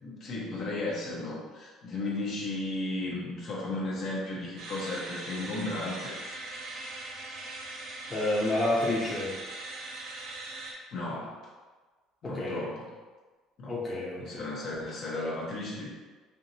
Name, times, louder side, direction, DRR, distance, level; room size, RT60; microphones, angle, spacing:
voice 1, 0.0-6.1 10.9-11.4 12.2-12.9 13.6-13.8 14.2-15.9, left 2 dB, 55° left, -4 dB, 1.1 m, -34 dB
sound 1, 4.6-10.7, right 2 dB, 65° right, 1.0 m, -40 dB
voice 2, 8.1-9.3 12.2-12.6 13.7-14.4, left 1 dB, 25° left, -6 dB, 0.9 m, -29 dB
5.0 x 2.8 x 2.8 m, 1.3 s
cardioid pair, 115°, 0 cm